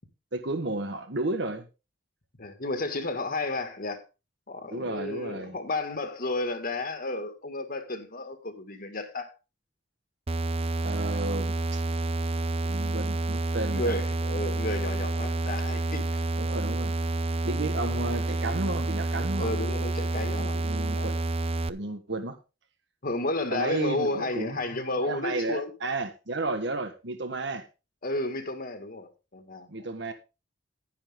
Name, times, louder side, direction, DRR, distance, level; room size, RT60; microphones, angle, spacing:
voice 1, 0.3-1.7 4.7-5.6 10.8-11.8 12.6-14.0 16.4-16.9 17.4-19.5 20.3-21.2 21.7-22.4 23.5-27.7 29.7-30.1, right 2 dB, 70° right, 1.5 m, -33 dB
voice 2, 2.4-4.0 4.5-9.3 13.7-16.2 19.4-21.1 23.0-25.7 28.0-29.7, left 2 dB, 50° left, 2.0 m, -32 dB
sound 1, 10.3-21.7, right 2 dB, 35° right, 0.6 m, -29 dB
12.0 x 10.0 x 3.7 m
head